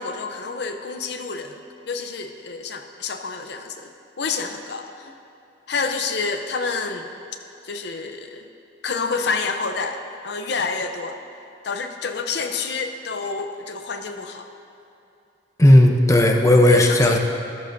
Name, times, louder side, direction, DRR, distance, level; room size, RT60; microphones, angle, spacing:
voice 1, 0.0-3.9 4.2-5.2 5.7-7.1 7.6-8.4 8.8-11.2 11.6-14.5 16.6-17.2, left 4 dB, 70° left, 5 dB, 0.7 m, -28 dB
voice 2, 15.6-17.2, left 1 dB, 20° left, 2 dB, 0.7 m, -14 dB
13.5 x 13.5 x 2.6 m, 2.7 s
head